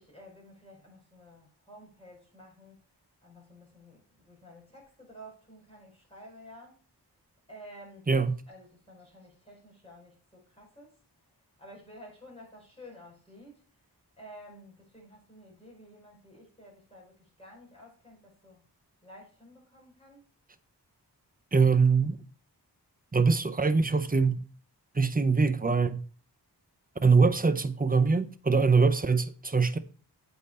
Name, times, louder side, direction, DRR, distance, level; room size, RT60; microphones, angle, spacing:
voice 1, 0.0-2.8 3.2-6.8 7.5-8.0 8.5-13.9 14.2-18.6 19.0-20.2, equal, 15° left, 4.7 m, -52 dB
voice 2, 21.5-22.2 23.1-24.4 24.9-26.0 27.0-29.8, right 4 dB, 20° right, 0.6 m, -23 dB
7.9 x 5.5 x 4.2 m
wide cardioid pair, 55°, 41 cm